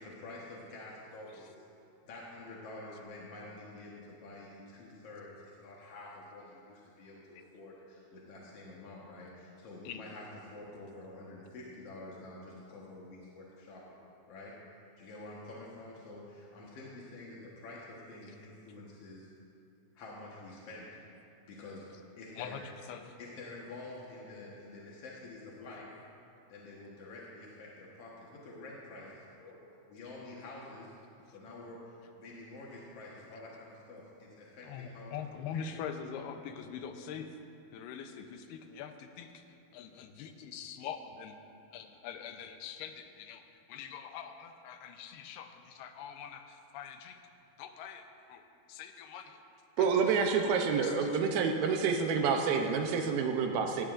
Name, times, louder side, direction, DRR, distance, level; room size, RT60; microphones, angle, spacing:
voice 1, 0.0-1.7 2.0-14.0 14.3-14.5 15.0-19.3 19.9-21.0 21.4-21.9 22.2-22.6 23.2-25.9 26.5-29.6 29.9-31.0 31.3-35.8, left 2 dB, 60° left, -4 dB, 1.6 m, -48 dB
voice 2, 22.4-23.2 34.6-37.4 37.7-39.4 39.7-41.4 41.7-43.4 43.7-47.2 47.6-48.4 48.7-49.4 49.8-51.1 52.2-52.3, left 7 dB, 85° left, 6 dB, 2.7 m, -44 dB
voice 3, 49.8-53.8, right 5 dB, 75° right, 4 dB, 2.4 m, -28 dB
17.0 x 16.0 x 2.5 m, 2.7 s
omnidirectional pair, 4.6 m